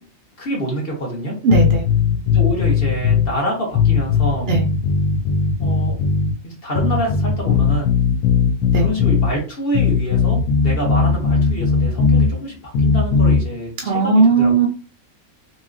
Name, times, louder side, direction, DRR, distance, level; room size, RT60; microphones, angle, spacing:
voice 1, 0.4-1.3 2.3-4.5 5.6-6.0 6.4-8.0 8.7-14.5, equal, 45° left, -2 dB, 1.0 m, -26 dB
voice 2, 1.4-1.9 4.5-4.6 8.7-8.9 13.8-14.7, right 4 dB, 70° right, 1 dB, 0.6 m, -16 dB
sound 1, 1.5-3.3 3.7-6.3 6.7-9.3 9.7-12.3 12.7-13.4, left 5 dB, 75° left, 1.0 m, -17 dB
3.0 x 2.8 x 2.4 m, 0.36 s
omnidirectional pair, 1.5 m